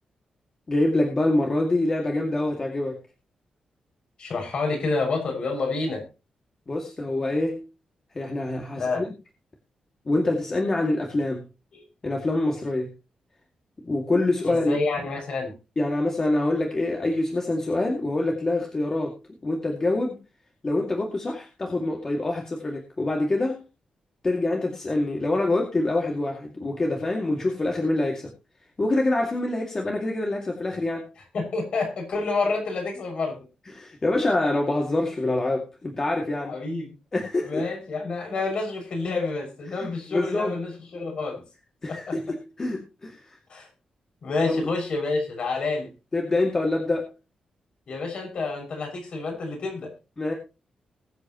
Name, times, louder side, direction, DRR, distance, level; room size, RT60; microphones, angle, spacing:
voice 1, 0.7-3.0 6.7-7.6 8.1-9.1 10.1-11.4 12.0-12.9 13.8-14.8 15.8-19.2 19.4-20.2 20.6-23.6 24.2-28.3 28.8-31.1 33.7-36.5 37.1-37.6 40.1-40.5 41.8-43.3 44.4-44.6 46.1-47.1 50.2-50.3, left 2 dB, 25° left, 1 dB, 2.3 m, -25 dB
voice 2, 4.2-6.0 8.8-9.0 11.7-11.8 14.4-15.5 31.3-33.4 36.5-36.9 37.4-41.4 41.9-42.2 43.5-43.7 44.2-45.9 47.9-49.9, left 3 dB, 50° left, 2 dB, 6.3 m, -28 dB
21.5 x 8.4 x 3.0 m, 0.30 s
wide cardioid pair, 170°, 2 cm